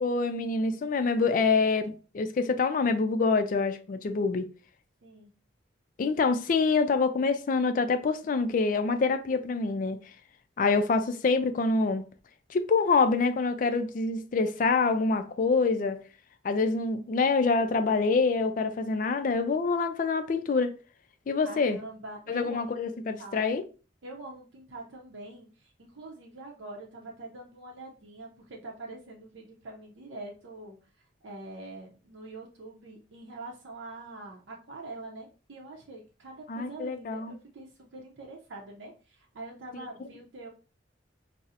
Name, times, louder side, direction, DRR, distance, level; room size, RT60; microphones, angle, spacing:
voice 1, 0.0-4.5 6.0-10.0 10.6-12.0 12.5-16.0 16.4-20.7 21.3-21.8 22.3-23.6 36.5-37.3, left 4 dB, 45° left, 0.3 m, -26 dB
voice 2, 21.4-22.6 23.2-23.4 24.0-30.8 31.2-40.5, right 2 dB, 80° right, 0.6 m, -44 dB
4.1 x 2.0 x 2.4 m
head